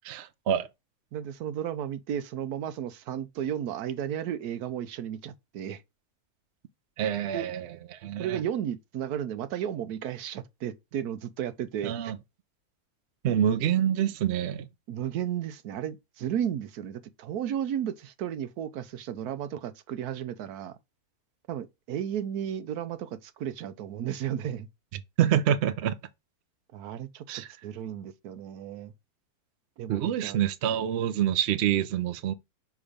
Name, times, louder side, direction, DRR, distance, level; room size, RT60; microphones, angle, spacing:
voice 1, 0.0-0.7 7.0-8.4 11.8-12.2 13.2-14.7 25.2-25.9 27.3-27.5 29.9-32.3, right 10 dB, 60° right, 0.7 m, -26 dB
voice 2, 1.1-5.8 7.3-7.5 8.2-12.1 14.9-20.8 21.5-24.7 26.7-28.9 29.8-30.4, right 10 dB, 80° right, 1.2 m, -34 dB
5.6 x 3.5 x 5.0 m
omnidirectional pair, 1.7 m